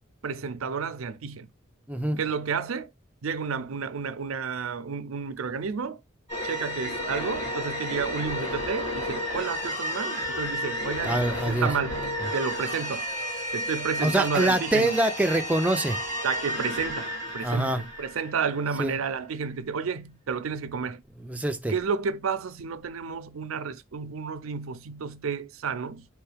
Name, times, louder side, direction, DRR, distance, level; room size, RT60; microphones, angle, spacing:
voice 1, 0.2-1.5 2.2-2.9 3.2-6.0 6.4-12.0 12.3-13.1 13.5-15.0 16.2-21.0 21.7-26.1, right 5 dB, 90° right, 0.5 m, -31 dB
voice 2, 1.9-2.2 11.0-11.7 14.0-16.0 17.4-17.8 18.8-19.0 21.2-21.7, right 1 dB, 5° right, 0.4 m, -25 dB
sound 1, 6.3-18.8, equal, 35° left, 3.0 m, -32 dB
4.6 x 3.1 x 3.3 m
head